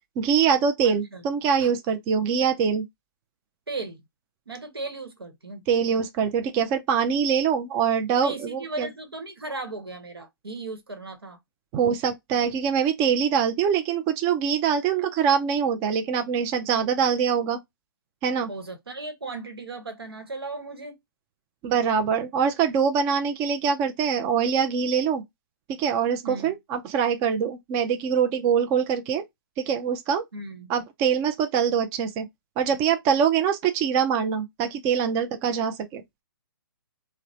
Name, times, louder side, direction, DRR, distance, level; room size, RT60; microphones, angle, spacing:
voice 1, 0.2-2.9 5.7-8.9 11.7-17.6 18.2-18.5 21.6-25.2 25.8-29.2 29.6-30.2 30.7-32.3 32.6-36.0, right 7 dB, 20° right, 0.3 m, -24 dB
voice 2, 0.8-1.2 1.6-1.7 3.7-4.0 4.5-5.6 8.2-11.4 18.5-20.9 26.2-26.5 30.3-30.7, right 2 dB, 90° right, 1.0 m, -36 dB
2.9 x 2.0 x 2.5 m
hypercardioid pair, 135°, 12 cm